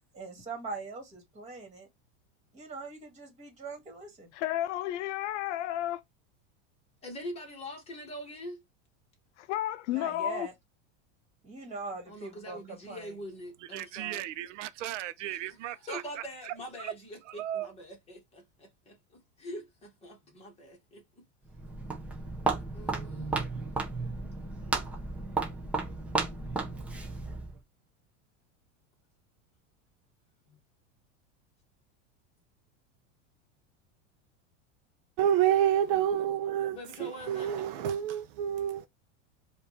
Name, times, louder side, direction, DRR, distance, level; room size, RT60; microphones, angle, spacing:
voice 1, 0.1-1.9 2.5-4.3 9.9-10.5 11.4-13.2, right 4 dB, 20° right, 2.1 m, -42 dB
voice 2, 4.3-6.0 9.4-10.5, left 13 dB, 75° left, 0.6 m, -32 dB
voice 3, 7.0-8.6 12.1-14.3 15.3-15.4 15.6-21.2 22.7-23.4 24.7-25.0 30.5-30.6 35.9-36.1 36.7-37.7, equal, 15° left, 1.6 m, -44 dB
voice 4, 13.7-16.9 17.3-17.7, right 12 dB, 85° right, 0.8 m, -37 dB
Walk footsteps, 21.4-27.6, right 3 dB, 5° right, 0.5 m, -34 dB
voice 5, 35.2-38.9, right 10 dB, 50° right, 0.6 m, -28 dB
4.9 x 2.6 x 3.2 m
supercardioid pair, 170°, 36 cm